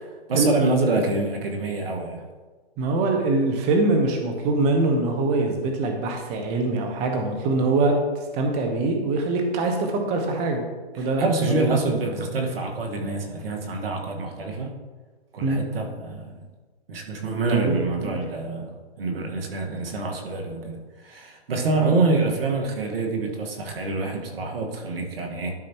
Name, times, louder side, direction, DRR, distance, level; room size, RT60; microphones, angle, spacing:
voice 1, 0.3-2.2 10.9-14.7 15.3-16.4 16.9-25.5, right 3 dB, 60° right, 2 dB, 1.7 m, -26 dB
voice 2, 2.8-7.9 8.3-10.6 11.0-11.7 15.4-15.7 17.5-18.2, right 3 dB, 20° right, 3 dB, 1.0 m, -23 dB
12.0 x 5.0 x 3.0 m, 1.3 s
hypercardioid pair, 150°, 32 cm